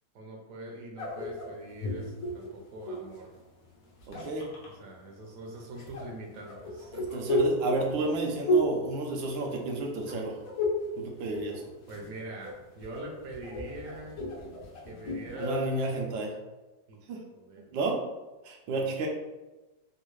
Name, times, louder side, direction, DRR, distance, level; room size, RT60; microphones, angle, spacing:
voice 1, 0.1-3.3 4.6-6.9 11.9-14.2 14.9-15.9 16.9-17.0 17.3-17.8 18.7-18.9, right 1 dB, 60° right, 0 dB, 0.9 m, -43 dB
sound 1, 1.0-3.2 3.9-4.7 5.8-9.8 10.1-10.9 11.2-12.1 12.4-15.7, equal, 60° left, 1.0 m, -32 dB
voice 2, 4.1-4.5 6.9-10.4 11.0-11.5 15.3-16.3 17.1-17.2 17.7-18.0 18.4-19.1, right 2 dB, 85° right, 1 dB, 1.3 m, -31 dB
3.6 x 2.4 x 3.1 m, 1.1 s
omnidirectional pair, 2.0 m